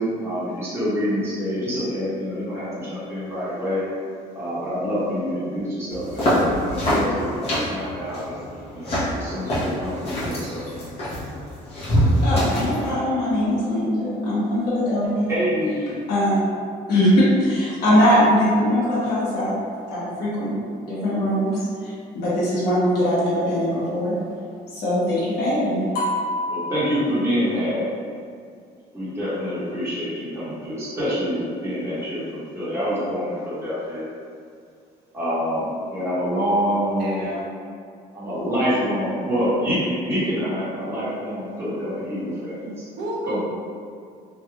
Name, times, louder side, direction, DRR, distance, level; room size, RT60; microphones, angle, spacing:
voice 1, 0.0-3.8 4.3-8.4 8.7-10.6 15.3-16.0 26.5-27.9 28.9-34.0 35.1-37.2 38.1-42.7 43.2-43.4, equal, 15° right, -13 dB, 1.4 m, -26 dB
sound 1, 5.9-12.9, equal, 35° left, 1.2 m, -24 dB
voice 2, 12.2-15.3 16.1-16.4 16.9-19.5 19.9-20.6 20.9-24.1 24.7-26.7, equal, 70° left, -10 dB, 1.1 m, -21 dB
voice 3, 37.0-37.5 42.6-43.4, equal, 75° right, -5 dB, 0.9 m, -32 dB
3.3 x 2.7 x 2.4 m, 2.3 s
cardioid pair, 110°, 17 cm